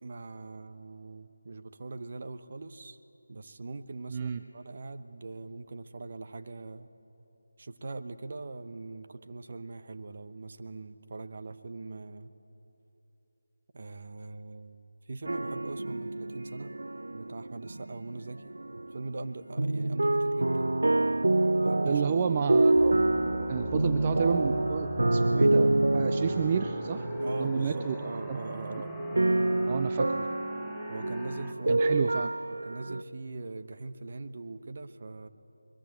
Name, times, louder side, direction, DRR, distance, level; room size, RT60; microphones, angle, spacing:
voice 1, 0.0-3.0 3.3-6.9 7.6-12.3 13.7-16.8 17.1-18.5 18.9-20.8 21.6-22.0 27.2-28.9 30.9-31.8 32.5-35.3, right 3 dB, 45° right, 10 dB, 1.0 m, -41 dB
voice 2, 4.1-4.4 21.9-23.0 23.5-27.1 27.4-28.4 29.6-30.3 31.7-32.3, right 7 dB, 25° right, 10 dB, 0.4 m, -31 dB
sound 1, 15.3-19.3 19.5-33.0, right 2 dB, 75° right, 0.5 m, -27 dB
sound 2, 22.7-31.5, left 1 dB, ahead, 1.0 m, -44 dB
23.5 x 21.5 x 7.9 m, 3.0 s
figure-of-eight pair, 165°, 0 cm